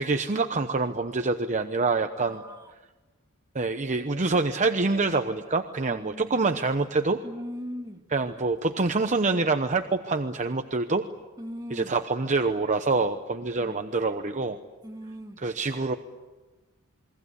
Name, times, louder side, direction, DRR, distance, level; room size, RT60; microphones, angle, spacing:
voice 1, 0.0-2.4 3.5-7.2 8.1-11.0 11.7-14.6 15.4-16.0, right 3 dB, 35° right, 7 dB, 1.0 m, -26 dB
voice 2, 2.2-2.6 5.9-6.4 7.2-8.0 11.4-11.9 13.6-13.8 14.8-15.4, equal, 15° right, 3 dB, 2.0 m, -39 dB
28.5 x 23.0 x 8.3 m, 1.2 s
head